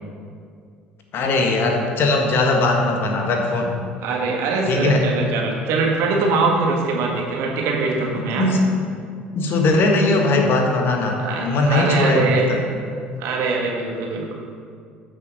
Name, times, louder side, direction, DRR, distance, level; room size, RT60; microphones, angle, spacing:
voice 1, 1.1-3.8 4.7-5.0 8.1-8.7 9.3-12.6, left 2 dB, 50° left, 2 dB, 1.5 m, -19 dB
voice 2, 4.0-8.5 11.2-12.5 13.2-14.3, right 3 dB, 60° right, -1 dB, 1.8 m, -22 dB
13.0 x 6.4 x 4.0 m, 2.2 s
figure-of-eight pair, 60°, 5 cm